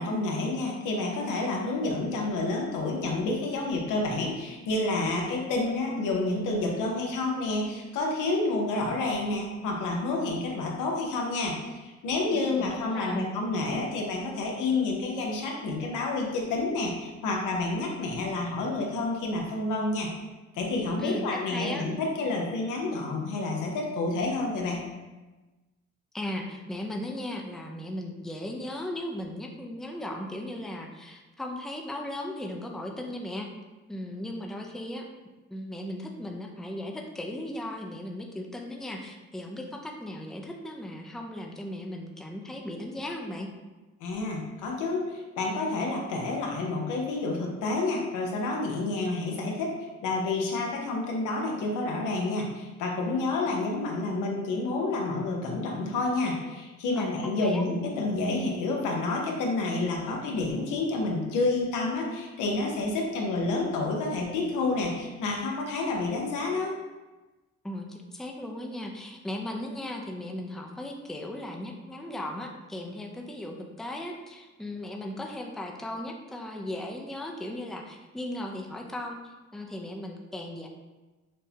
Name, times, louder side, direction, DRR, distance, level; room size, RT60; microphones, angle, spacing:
voice 1, 0.0-20.1 20.5-24.8 44.0-49.7 50.0-66.8, left 2 dB, 85° left, -1 dB, 0.9 m, -29 dB
voice 2, 12.3-13.3 21.0-21.8 26.1-33.5 33.9-35.1 35.5-43.5 57.0-57.1 57.4-57.6 67.6-80.7, left 1 dB, ahead, 1 dB, 0.4 m, -37 dB
6.3 x 2.1 x 2.8 m, 1.2 s
cardioid pair, 90°, 30 cm